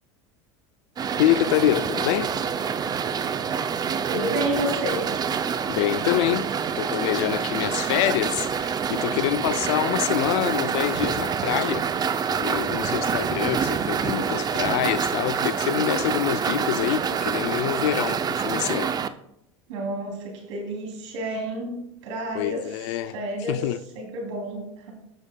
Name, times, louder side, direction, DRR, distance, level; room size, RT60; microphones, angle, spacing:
sound 1, 1.0-19.1, right 7 dB, 25° right, 0.5 m, -26 dB
voice 1, 1.2-2.4 5.7-6.5 6.8-11.9 12.4-19.0 22.3-23.1 23.5-23.8, left 13 dB, 70° left, 0.5 m, -26 dB
voice 2, 4.0-5.0 19.7-23.7 23.9-24.9, right 1 dB, 75° right, 3.1 m, -30 dB
15.5 x 6.4 x 2.3 m
hypercardioid pair, 95°, 16 cm